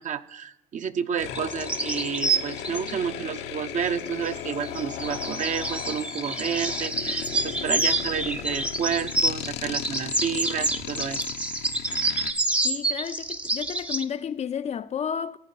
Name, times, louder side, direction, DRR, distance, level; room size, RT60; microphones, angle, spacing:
voice 1, 0.0-11.2, right 8 dB, 45° right, 0.7 m, -30 dB
sound 1, 1.2-12.3, left 11 dB, 85° left, 0.9 m, -36 dB
sound 2, 1.4-2.9 4.3-9.5 9.7-14.0, right 2 dB, 5° right, 0.6 m, -28 dB
voice 2, 12.6-15.4, left 8 dB, 40° left, 0.5 m, -31 dB
15.0 x 8.5 x 5.7 m
cardioid pair, 110°, 17 cm